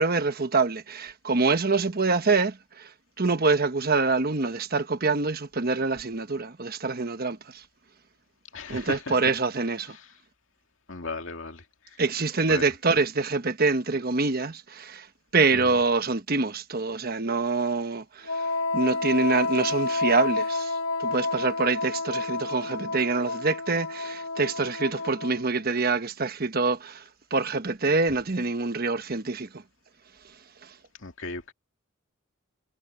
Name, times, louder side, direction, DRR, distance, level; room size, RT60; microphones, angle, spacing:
voice 1, 0.0-2.9 3.2-7.6 8.7-10.0 12.0-15.1 15.3-18.5 18.7-27.0 27.3-29.5, right 3 dB, 45° right, 1.2 m, -25 dB
voice 2, 8.5-9.4 9.9-10.0 10.9-11.6 12.5-12.7 15.5-15.8 31.0-31.5, left 3 dB, 65° left, 2.5 m, -36 dB
Wind instrument woodwind instrument, 18.2-25.6, left 3 dB, 85° left, 1.1 m, -30 dB
head